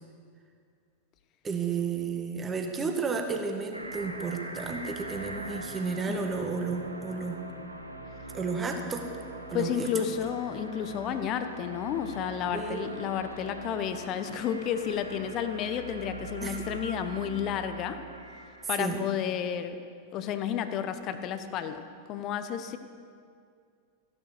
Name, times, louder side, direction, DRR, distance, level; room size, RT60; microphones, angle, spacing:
voice 1, 1.4-7.4 8.3-9.0 9.5-9.9 12.5-12.9 16.4-16.7 18.8-19.0, right 5 dB, 20° right, 4 dB, 1.8 m, -32 dB
sound 1, 3.7-18.8, right 2 dB, 85° right, 1.2 m, -42 dB
voice 2, 6.1-6.4 9.5-18.0 18.7-19.8 20.1-22.8, left 9 dB, 35° left, 10 dB, 1.0 m, -32 dB
15.0 x 11.0 x 6.8 m, 2.2 s
figure-of-eight pair, 90°, 0 cm